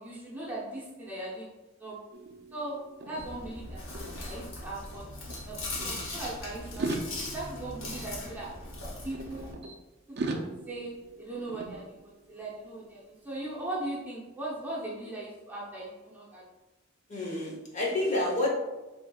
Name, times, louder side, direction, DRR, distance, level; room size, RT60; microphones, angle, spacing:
voice 1, 0.0-1.5 1.8-2.0 2.5-3.8 4.3-5.1 5.4-6.9 7.2-8.5 9.0-9.6 10.1-16.4, right 2 dB, 10° right, -6 dB, 0.8 m, -39 dB
sound 1, 2.1-5.0 5.3-6.1 6.6-9.7 10.2-12.4, right 2 dB, 55° right, 0.5 m, -40 dB
Chewing mastication, 3.2-9.5, left 2 dB, 75° left, 0.9 m, -40 dB
voice 2, 17.1-18.5, left 1 dB, 40° left, -3 dB, 0.9 m, -29 dB
5.0 x 3.4 x 2.3 m, 1.1 s
head